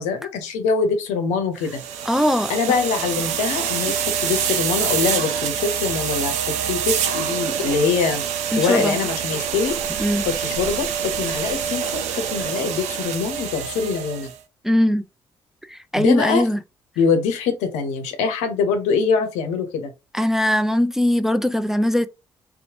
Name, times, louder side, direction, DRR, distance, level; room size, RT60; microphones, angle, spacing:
voice 1, 0.0-1.8 2.5-3.9 4.2-6.3 6.7-8.2 8.5-9.8 10.2-14.3 16.0-16.5 17.0-19.9, left 5 dB, 85° left, 0.6 m, -23 dB
sound 1, 1.6-14.4, right 8 dB, 80° right, 0.4 m, -26 dB
voice 2, 2.1-2.5 8.5-8.9 10.0-10.2 14.6-15.0 15.7-16.6 20.1-22.1, left 1 dB, 5° right, 0.4 m, -20 dB
2.8 x 2.1 x 2.8 m
hypercardioid pair, 50°, 12 cm